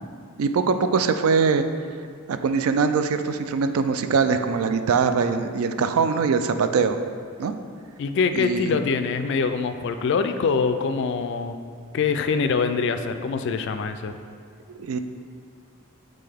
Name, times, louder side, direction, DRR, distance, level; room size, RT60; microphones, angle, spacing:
voice 1, 0.4-1.6 2.3-7.0 7.4-7.5 8.3-8.8 14.7-15.0, right 5 dB, 70° right, 9 dB, 0.3 m, -22 dB
voice 2, 8.0-11.5 11.9-14.2, left 5 dB, 55° left, 8 dB, 0.3 m, -24 dB
7.6 x 3.8 x 3.5 m, 2.3 s
head